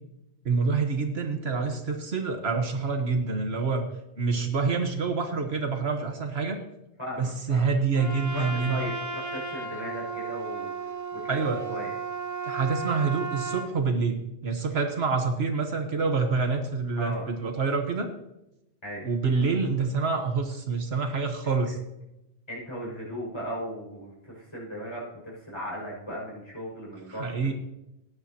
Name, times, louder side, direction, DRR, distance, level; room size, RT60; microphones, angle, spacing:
voice 1, 0.4-3.8 4.2-6.6 7.2-8.9 11.3-11.6 12.5-18.1 19.0-21.8 27.1-27.5, right 4 dB, 70° right, 5 dB, 1.4 m, -27 dB
voice 2, 7.0-7.7 8.3-11.4 11.7-11.9 17.0-17.3 18.8-19.1 21.6-21.7 22.5-27.5, equal, 25° left, -5 dB, 5.7 m, -37 dB
Trumpet, 7.9-13.7, right 5 dB, 15° right, 0.9 m, -34 dB
18.0 x 10.5 x 2.9 m, 0.89 s
omnidirectional pair, 1.1 m